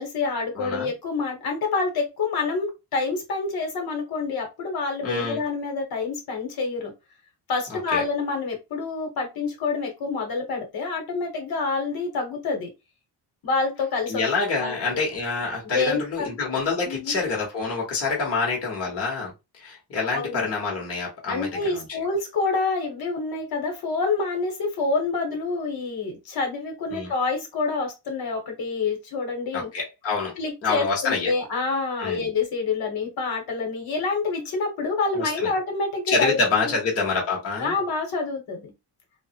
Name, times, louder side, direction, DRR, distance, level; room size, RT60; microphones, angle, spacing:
voice 1, 0.0-6.9 7.5-12.7 13.4-14.3 14.6-15.0 15.6-16.3 16.8-17.1 18.4-18.5 20.1-20.5 21.3-29.7 30.4-36.4 36.6-36.7 37.6-38.7, left 4 dB, 60° left, 1.1 m, -27 dB
voice 2, 0.5-0.9 5.0-5.4 7.7-8.0 14.1-22.0 26.9-27.1 29.5-30.4 30.6-31.3 32.0-32.3 35.1-35.5 36.1-37.7, left 4 dB, 35° left, 0.9 m, -27 dB
3.2 x 2.1 x 2.8 m
cardioid pair, 165°, 42 cm